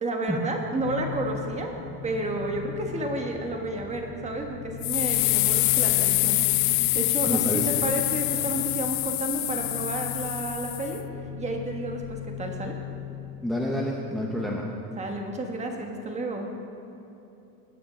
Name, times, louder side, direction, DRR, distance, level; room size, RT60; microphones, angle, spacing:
voice 1, 0.0-1.7 2.0-11.0 11.4-12.7 15.0-16.5, right 2 dB, 20° right, 2 dB, 1.3 m, -31 dB
sound 1, 0.8-13.3, left 6 dB, 55° right, 2.0 m, -38 dB
sound 2, 4.8-11.0, left 21 dB, 70° left, 0.5 m, -25 dB
voice 2, 7.3-7.7 13.4-14.7, equal, ahead, -2 dB, 0.8 m, -28 dB
17.0 x 8.9 x 5.1 m, 2.8 s
cardioid pair, 160°, 35 cm